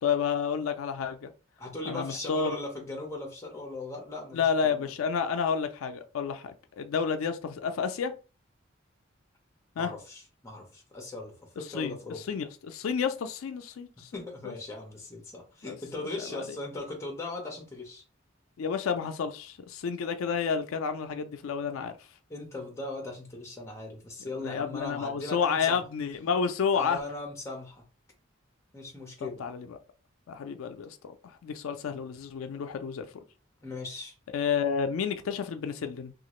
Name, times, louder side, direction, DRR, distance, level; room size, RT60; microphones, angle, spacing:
voice 1, 0.0-1.3 1.9-2.6 4.3-8.1 9.8-9.9 11.6-14.5 15.6-15.8 16.3-16.4 18.6-21.9 24.4-27.0 29.4-29.8 30.3-31.1 31.4-33.1 34.3-36.1, left 6 dB, 85° left, 0.4 m, -30 dB
voice 2, 1.6-4.9 9.8-12.2 14.1-18.0 22.3-25.8 26.7-27.8 28.7-29.4 33.6-34.1, left 2 dB, 15° left, 0.8 m, -39 dB
2.8 x 2.4 x 3.0 m
head